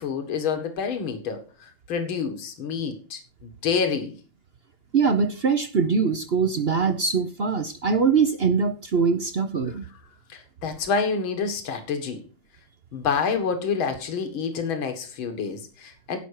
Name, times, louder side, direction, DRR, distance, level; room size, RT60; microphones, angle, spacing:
voice 1, 0.0-4.2 10.3-12.2 12.9-16.2, left 5 dB, 75° left, 7 dB, 2.4 m, -28 dB
voice 2, 4.9-9.8, right 5 dB, 60° right, 10 dB, 0.6 m, -22 dB
16.5 x 6.0 x 4.7 m, 0.35 s
omnidirectional pair, 2.2 m